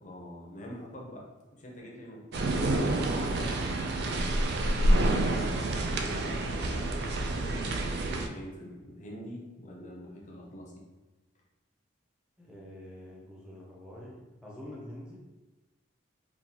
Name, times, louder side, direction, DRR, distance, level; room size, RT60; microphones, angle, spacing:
voice 1, 0.0-1.3 1.5-3.5 3.9-5.4 5.9-7.0 7.6-10.8, equal, 40° left, -2 dB, 0.6 m, -44 dB
sound 1, 2.3-8.3, right 1 dB, 55° right, 0.3 m, -28 dB
voice 2, 12.4-15.2, left 1 dB, 5° right, -5 dB, 0.7 m, -46 dB
3.7 x 2.4 x 2.8 m, 1.2 s
head